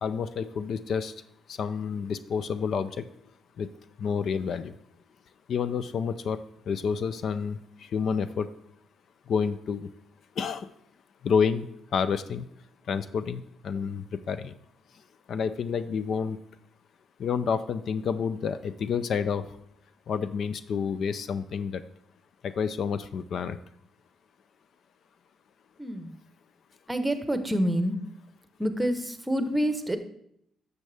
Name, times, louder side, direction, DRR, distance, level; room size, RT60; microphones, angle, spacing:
voice 1, 0.0-1.1 1.5-3.1 3.6-3.7 4.0-4.8 5.5-8.5 9.3-9.9 10.4-10.7 11.2-12.5 12.9-14.5 15.3-16.4 17.2-19.6 20.1-21.8 22.4-23.6, left 6 dB, 60° left, 13 dB, 0.4 m, -29 dB
voice 2, 25.8-26.2 26.9-28.0 28.6-30.0, equal, 10° right, 9 dB, 1.0 m, -27 dB
10.5 x 6.7 x 3.4 m, 0.72 s
cardioid pair, 90°, 0 cm